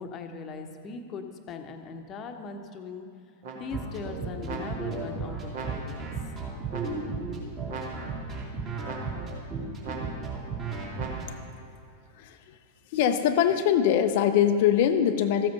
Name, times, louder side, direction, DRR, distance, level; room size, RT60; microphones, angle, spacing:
voice 1, 0.0-3.1 3.5-6.1, left 4 dB, 30° left, 5 dB, 1.0 m, -40 dB
sound 1, 3.4-4.0 4.4-5.1 5.5-6.2 6.7-7.3 7.7-8.3 8.8-9.4 9.8-10.5 11.0-11.6, right 4 dB, 50° right, 1.7 m, -40 dB
sound 2, 3.7-11.2, right 4 dB, 30° right, 2.7 m, -34 dB
voice 2, 12.9-15.5, left 9 dB, 50° left, 8 dB, 0.6 m, -22 dB
14.0 x 7.8 x 5.4 m, 2.3 s
figure-of-eight pair, 90°, 0 cm